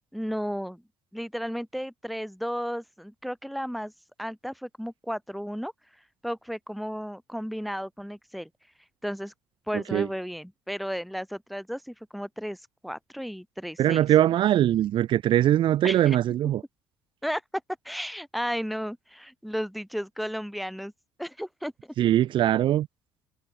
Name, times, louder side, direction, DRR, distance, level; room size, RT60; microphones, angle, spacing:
voice 1, 0.1-0.8 1.1-3.9 4.2-5.7 6.2-8.5 9.0-9.3 9.7-14.1 15.8-16.2 17.2-17.4 17.8-20.9 21.2-21.9, equal, ahead, 7.4 m, -34 dB
voice 2, 13.8-16.6 22.0-22.9, right 12 dB, 65° right, 1.1 m, -21 dB
supercardioid pair, 65°, 9 cm